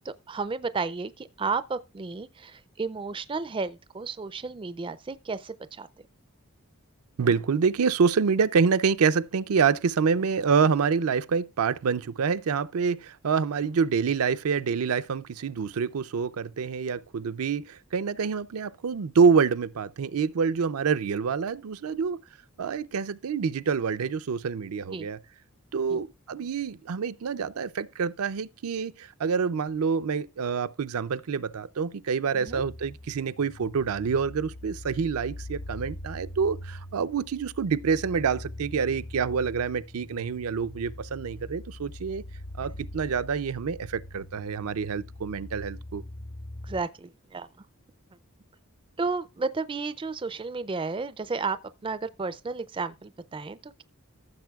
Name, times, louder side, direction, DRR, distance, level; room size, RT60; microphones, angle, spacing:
voice 1, 0.1-5.9 24.9-25.1 25.9-26.0 32.3-32.6 46.6-47.7 49.0-53.8, right 4 dB, 25° right, 0.4 m, -33 dB
voice 2, 7.2-22.2 22.6-25.2 25.7-42.2 42.6-46.0, right 5 dB, 80° right, 0.5 m, -27 dB
sound 1, 32.5-46.8, left 1 dB, 45° left, 0.8 m, -42 dB
15.0 x 6.7 x 2.3 m
head